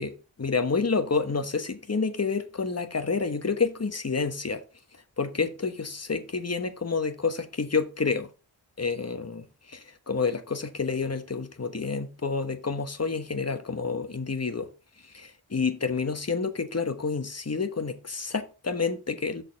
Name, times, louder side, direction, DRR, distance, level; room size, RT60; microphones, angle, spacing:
voice 1, 0.0-4.6 5.2-8.3 8.8-14.7 15.0-19.4, left 4 dB, 30° left, 1.1 m, -29 dB
6.5 x 4.2 x 6.3 m
wide cardioid pair, 80°, 49 cm